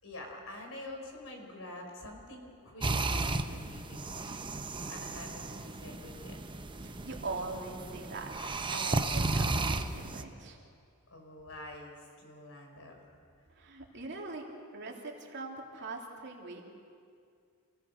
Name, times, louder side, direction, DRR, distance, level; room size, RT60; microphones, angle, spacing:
voice 1, 0.0-6.4 11.1-13.2 13.9-14.1, left 1 dB, 65° left, 2 dB, 4.8 m, -47 dB
sound 1, 2.8-10.2, right 2 dB, 20° right, 0.9 m, -34 dB
voice 2, 6.8-10.6 13.5-14.4 14.7-16.6, right 3 dB, 55° right, -1 dB, 3.0 m, -42 dB
28.0 x 17.5 x 6.6 m, 2.3 s
head